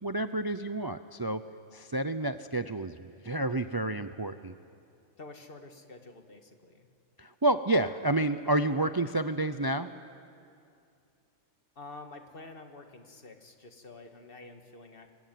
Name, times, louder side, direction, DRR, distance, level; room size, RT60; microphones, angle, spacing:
voice 1, 0.0-1.4 1.7-4.5 7.2-9.9, right 2 dB, 35° right, 10 dB, 0.3 m, -29 dB
voice 2, 5.2-6.9 11.8-15.1, left 3 dB, 40° left, 5 dB, 2.0 m, -48 dB
25.5 x 21.5 x 9.2 m, 2.4 s
omnidirectional pair, 1.4 m